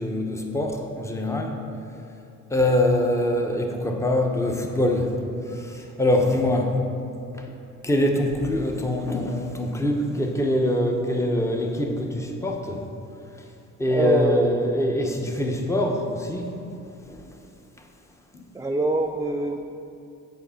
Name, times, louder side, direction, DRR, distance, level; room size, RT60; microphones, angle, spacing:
voice 1, 0.0-1.7 2.5-6.8 7.3-7.5 7.8-12.8 13.8-16.6 17.1-17.4 18.3-18.4, left 1 dB, 10° left, 2 dB, 0.9 m, -24 dB
voice 2, 13.9-14.5 18.5-19.6, right 2 dB, 10° right, 2 dB, 0.4 m, -24 dB
7.7 x 4.9 x 7.0 m, 2.7 s
cardioid pair, 90°, 30 cm